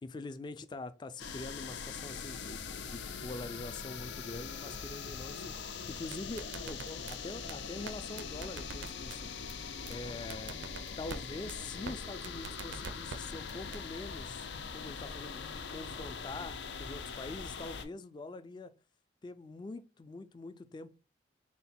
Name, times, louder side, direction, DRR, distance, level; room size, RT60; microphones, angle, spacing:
voice 1, 0.0-5.5 5.9-9.3 9.9-10.6 11.0-14.5 14.7-18.7 19.2-20.9, left 2 dB, 25° left, 0.3 m, -44 dB
sound 1, 1.2-17.9, left 5 dB, 90° left, 0.5 m, -42 dB
sound 2, 5.9-7.2 7.5-7.6 7.9-8.0 8.2-9.2 9.5-9.6 9.9-10.0 10.3-11.2 11.5-11.6 11.9-12.0 12.2-13.2 13.5-13.8, right 5 dB, 85° right, 0.5 m, -43 dB
3.8 x 2.1 x 4.1 m
head